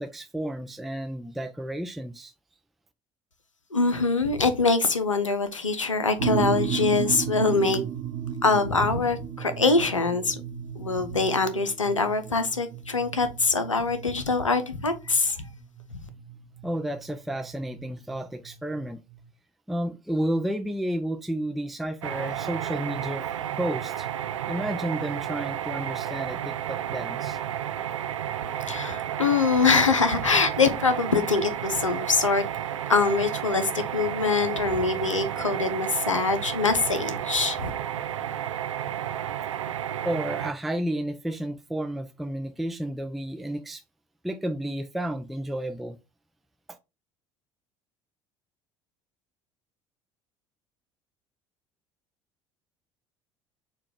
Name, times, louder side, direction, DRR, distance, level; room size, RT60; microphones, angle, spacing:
voice 1, 0.0-2.3 16.6-19.0 19.7-23.3 23.5-24.1 24.5-27.4 40.0-43.8 44.2-46.0, right 1 dB, ahead, 0.4 m, -31 dB
voice 2, 3.7-7.8 8.4-10.4 10.8-15.4 28.4-32.4 32.9-37.7, left 4 dB, 85° left, 0.6 m, -24 dB
sound 1, 6.2-19.2, right 9 dB, 55° right, 0.8 m, -35 dB
sound 2, 22.0-40.5, right 10 dB, 75° right, 0.4 m, -32 dB
6.6 x 2.3 x 3.4 m
figure-of-eight pair, 60°, 16 cm